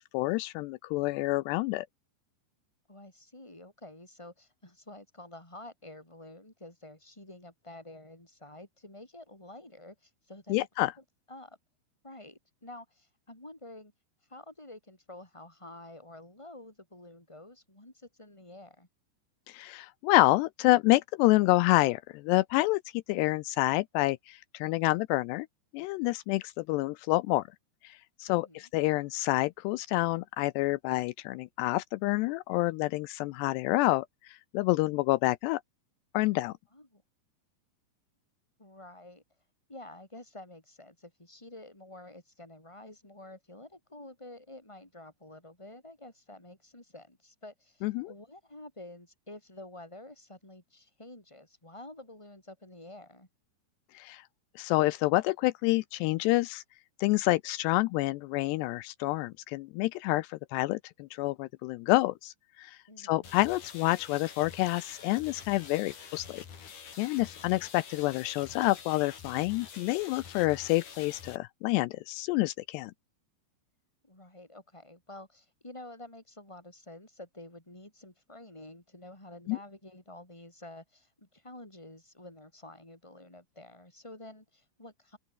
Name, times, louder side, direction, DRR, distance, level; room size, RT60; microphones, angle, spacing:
voice 1, 0.1-1.9 10.5-10.9 19.5-25.5 25.7-27.4 27.8-35.6 36.1-36.5 47.8-48.1 53.9-54.2 54.6-56.6 57.0-66.5 67.0-72.9 79.5-79.6, left 20 dB, 90° left, 2.4 m, -28 dB
voice 2, 2.9-10.7 11.3-11.6 12.0-13.9 14.3-18.9 28.3-28.7 36.7-37.0 38.6-39.2 39.7-53.3 62.9-63.3 74.0-85.2, left 2 dB, 5° left, 7.2 m, -49 dB
sound 1, 63.2-71.4, left 6 dB, 45° left, 4.6 m, -47 dB
omnidirectional pair, 5.5 m